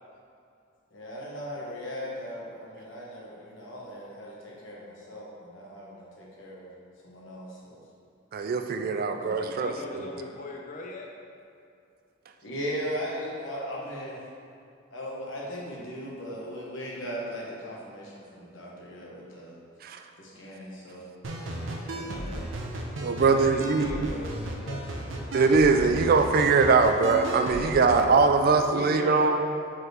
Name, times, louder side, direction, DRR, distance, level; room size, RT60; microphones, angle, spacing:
voice 1, 0.9-6.7 7.0-7.8 9.1-9.4 9.9-10.1 12.4-14.2 14.9-19.5 20.2-21.0 21.9-22.4 25.8-25.9, equal, 80° left, -4 dB, 1.3 m, -38 dB
voice 2, 8.3-10.0 19.8-20.0 23.0-24.1 25.3-29.4, right 4 dB, 50° right, 7 dB, 0.3 m, -22 dB
voice 3, 9.3-11.1 23.1-25.1 27.5-28.1 28.4-29.4, left 2 dB, 40° left, 0 dB, 0.5 m, -40 dB
sound 1, 21.2-28.1, right 1 dB, 80° right, 0.7 m, -35 dB
4.5 x 4.3 x 4.9 m, 2.5 s
head